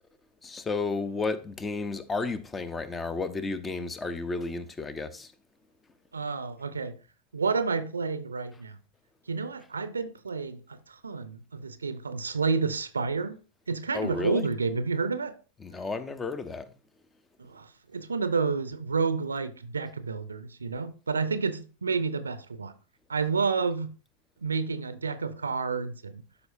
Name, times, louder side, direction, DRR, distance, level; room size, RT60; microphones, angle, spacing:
voice 1, 0.4-5.3 13.9-14.5 15.6-16.7, left 3 dB, 15° left, 0.7 m, -32 dB
voice 2, 6.1-6.9 7.3-8.8 9.3-13.4 13.7-15.3 17.4-17.7 17.9-22.7 23.1-23.9 24.4-26.2, right 4 dB, 75° right, 0.6 m, -30 dB
12.0 x 4.9 x 2.6 m
figure-of-eight pair, 90°, 0 cm